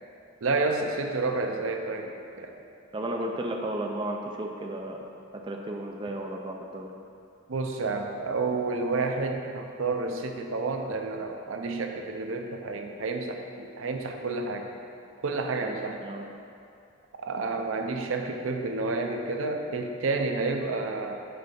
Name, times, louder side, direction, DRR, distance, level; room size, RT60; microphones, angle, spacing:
voice 1, 0.4-2.6 7.5-14.7 15.2-16.0 17.1-21.1, right 3 dB, 70° right, 4 dB, 0.6 m, -30 dB
voice 2, 2.9-5.0 5.4-6.9 15.6-16.2, right 1 dB, 25° right, 1 dB, 0.5 m, -34 dB
7.8 x 3.9 x 5.2 m, 2.4 s
head